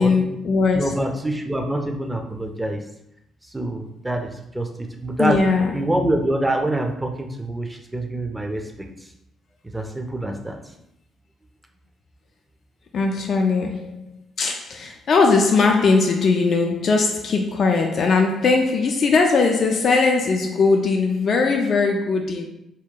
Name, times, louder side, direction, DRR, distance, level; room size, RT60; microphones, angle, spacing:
voice 1, 0.0-1.0 5.2-5.9 12.9-14.0 14.4-22.5, left 4 dB, 50° left, 2 dB, 0.3 m, -19 dB
voice 2, 0.7-2.8 3.5-8.9 9.6-10.6, right 1 dB, 10° right, 4 dB, 0.5 m, -26 dB
2.8 x 2.2 x 3.7 m, 0.81 s
figure-of-eight pair, 45°, 0 cm